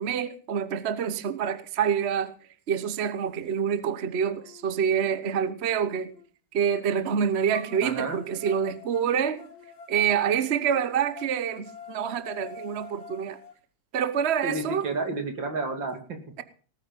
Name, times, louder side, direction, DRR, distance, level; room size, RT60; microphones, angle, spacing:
voice 1, 0.0-2.3 2.7-6.1 6.5-9.4 9.9-13.4 13.9-14.9, right 8 dB, 45° right, 12 dB, 0.8 m, -27 dB
sound 1, 3.7-3.8 4.4-6.3 7.5-13.5, left 5 dB, 50° left, 2.8 m, -47 dB
voice 2, 7.8-8.2 14.4-16.2, right 3 dB, 65° right, 5 dB, 3.2 m, -31 dB
19.0 x 9.2 x 5.4 m, 0.40 s
omnidirectional pair, 2.2 m